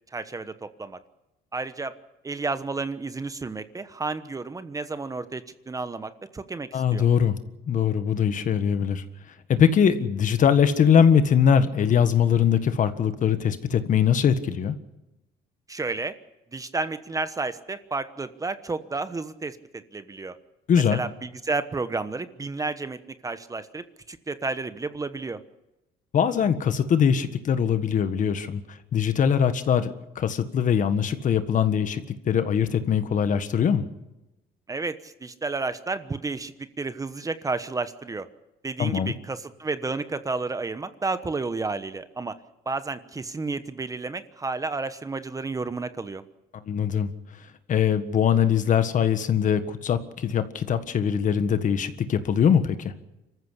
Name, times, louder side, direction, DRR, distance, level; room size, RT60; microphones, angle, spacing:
voice 1, 0.1-1.0 1.5-1.9 2.2-7.0 15.7-16.2 16.5-20.4 20.9-25.4 34.7-38.3 38.6-42.4 42.7-46.2, right 3 dB, 20° right, 12 dB, 1.1 m, -31 dB
voice 2, 6.7-7.4 7.7-9.0 9.5-14.7 20.7-21.0 26.1-33.8 38.8-39.1 46.7-47.1 47.7-52.9, left 8 dB, 50° left, 10 dB, 1.6 m, -22 dB
25.5 x 14.5 x 8.3 m, 0.98 s
cardioid pair, 110°, 17 cm